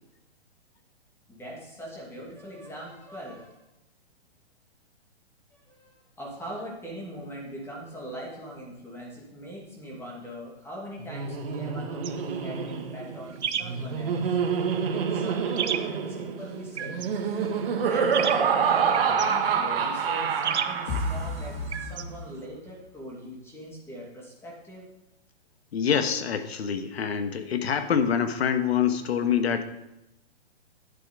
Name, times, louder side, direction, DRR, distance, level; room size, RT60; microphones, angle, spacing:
voice 1, 1.3-3.6 5.5-14.3 14.8-15.8 16.1-17.0 17.8-24.9, equal, 5° left, -3 dB, 2.4 m, -41 dB
Laughter, 11.0-21.5, right 6 dB, 60° right, 1.8 m, -27 dB
sound 1, 12.0-22.5, right 8 dB, 80° right, 0.9 m, -36 dB
sound 2, 20.9-22.7, left 2 dB, 30° left, 2.0 m, -33 dB
voice 2, 25.7-29.6, left 7 dB, 65° left, 8 dB, 1.5 m, -25 dB
11.0 x 7.7 x 5.1 m, 0.91 s
hypercardioid pair, 145°, 33 cm